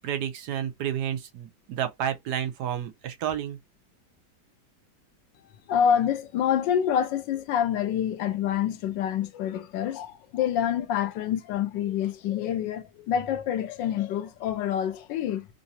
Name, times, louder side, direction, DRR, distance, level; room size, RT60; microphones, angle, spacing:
voice 1, 0.0-3.6, right 9 dB, 70° right, 1.2 m, -30 dB
voice 2, 5.7-15.5, left 9 dB, 90° left, 1.3 m, -27 dB
3.8 x 2.6 x 2.7 m
omnidirectional pair, 1.9 m